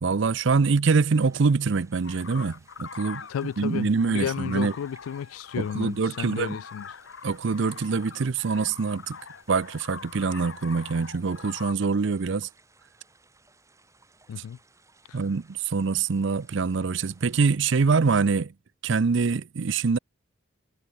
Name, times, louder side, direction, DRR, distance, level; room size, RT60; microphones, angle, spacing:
voice 1, 0.0-3.3 3.6-4.7 5.5-6.6 7.2-9.2 9.5-12.5 15.1-18.5 18.8-20.0, right 4 dB, 60° right, 0.5 m, -24 dB
sound 1, 1.1-17.6, right 3 dB, 15° right, 5.6 m, -61 dB
sound 2, 2.0-11.7, left 5 dB, 60° left, 1.0 m, -43 dB
voice 2, 3.3-6.9 14.3-14.6 15.1-15.2, left 8 dB, 90° left, 0.3 m, -33 dB
head